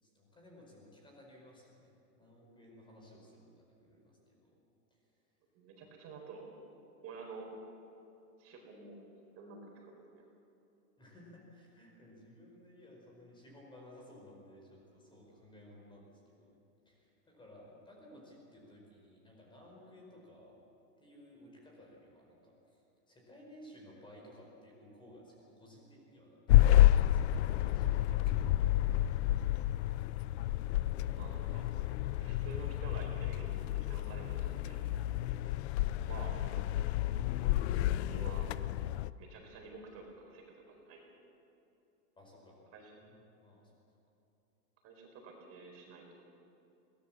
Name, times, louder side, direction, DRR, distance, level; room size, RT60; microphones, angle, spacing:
voice 1, 0.0-4.5 11.0-16.5 16.8-20.6 21.0-22.8 23.1-26.6 27.1-28.7 42.2-42.6 43.0-43.1 43.4-43.7, left 1 dB, 10° left, -1 dB, 4.7 m, -57 dB
voice 2, 5.5-6.5 7.0-7.5 8.4-9.0 9.4-9.9 31.1-31.6 32.2-34.8 36.0-36.4 38.0-38.5 39.2-41.0 42.7-42.9 44.8-46.2, right 4 dB, 30° right, 1 dB, 4.6 m, -49 dB
sound 1, 26.5-39.1, left 14 dB, 45° left, 0.5 m, -30 dB
22.5 x 18.5 x 7.2 m, 2.8 s
hypercardioid pair, 140°, 45 cm